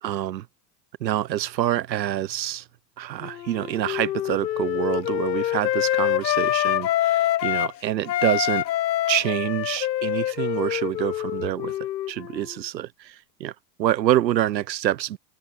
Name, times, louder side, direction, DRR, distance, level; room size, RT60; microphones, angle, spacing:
voice 1, 0.0-0.5 1.0-2.7 3.0-8.6 9.1-11.7 12.1-13.5 13.8-15.2, right 12 dB, 90° right, 3.0 m, -26 dB
Wind instrument woodwind instrument, 3.2-7.7 8.0-12.6, left 13 dB, 85° left, 2.7 m, -26 dB
hypercardioid pair, 110°, 49 cm